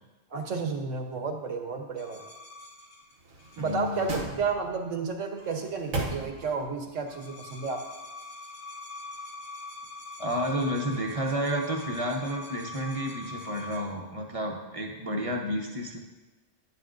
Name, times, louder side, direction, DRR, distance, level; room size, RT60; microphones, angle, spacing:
voice 1, 0.3-2.2 3.6-7.8, right 4 dB, 70° right, 4 dB, 1.3 m, -32 dB
sound 1, 2.0-4.5 5.2-5.9 6.1-6.6 6.9-13.9, left 2 dB, 55° left, 1.3 m, -43 dB
sound 2, 3.2-4.9 5.4-6.7 7.1-7.2, right 2 dB, 90° right, 1.5 m, -36 dB
voice 2, 3.6-4.0 10.2-16.0, equal, 30° right, 1 dB, 0.9 m, -31 dB
11.0 x 9.6 x 2.6 m, 1.1 s
omnidirectional pair, 1.3 m